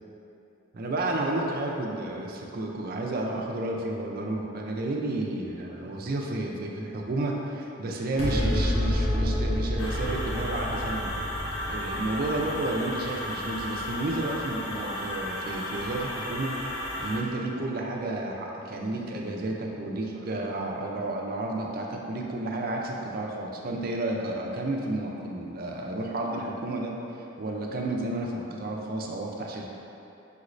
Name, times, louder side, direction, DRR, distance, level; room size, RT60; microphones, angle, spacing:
voice 1, 0.7-11.1 11.7-16.5 17.0-26.9 27.4-29.7, right 2 dB, 50° right, 0 dB, 0.4 m, -31 dB
sound 1, 8.2-14.9, left 1 dB, 30° left, 0.6 m, -30 dB
sound 2, 9.8-17.2, left 1 dB, 85° left, 0.8 m, -34 dB
5.5 x 3.1 x 2.5 m, 2.9 s
head